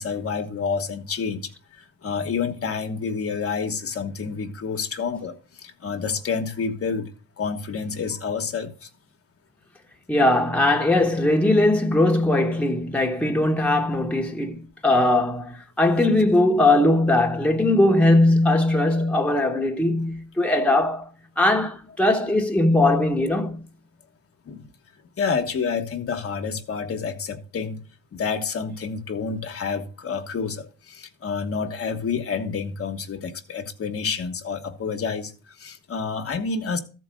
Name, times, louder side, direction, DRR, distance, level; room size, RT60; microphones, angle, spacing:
voice 1, 0.0-1.5 2.0-7.1 7.4-8.9 24.5-24.7 25.2-27.8 28.1-35.3 35.6-36.8, left 5 dB, 50° left, 1.2 m, -28 dB
voice 2, 10.1-21.1 21.4-23.6, left 1 dB, 5° left, 1.2 m, -20 dB
13.5 x 4.6 x 6.3 m
cardioid pair, 90°, 30 cm